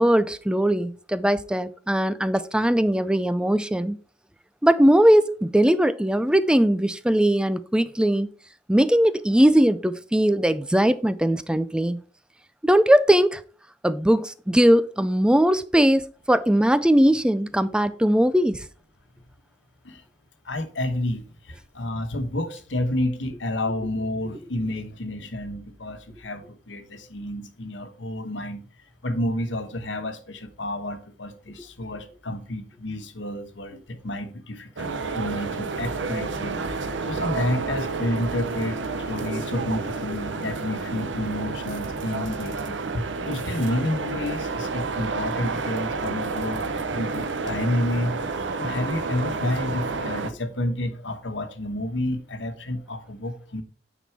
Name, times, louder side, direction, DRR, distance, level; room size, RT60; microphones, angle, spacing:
voice 1, 0.0-4.0 4.6-8.3 8.7-12.0 12.6-13.4 13.8-18.6, equal, 5° right, 0.4 m, -20 dB
voice 2, 20.4-28.7 29.0-36.6 37.0-53.6, left 1 dB, 80° left, 1.2 m, -30 dB
sound 1, 34.8-50.3, right 4 dB, 80° right, 0.8 m, -30 dB
9.2 x 4.2 x 4.6 m
head